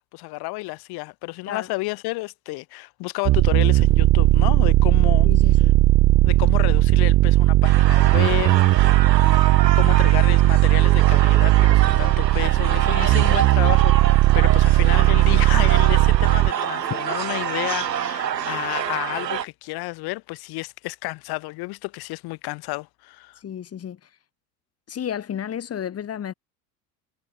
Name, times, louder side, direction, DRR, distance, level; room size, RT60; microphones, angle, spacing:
voice 1, 0.0-5.3 6.2-8.9 9.7-23.4, left 23 dB, 50° left, 2.5 m, -31 dB
sound 1, 3.2-16.5, right 16 dB, 35° right, 0.9 m, -17 dB
voice 2, 5.2-5.8 23.4-24.1 24.9-26.3, left 9 dB, 30° left, 3.1 m, -32 dB
sound 2, 7.6-19.4, right 9 dB, 80° right, 3.7 m, -27 dB
figure-of-eight pair, 75°, 49 cm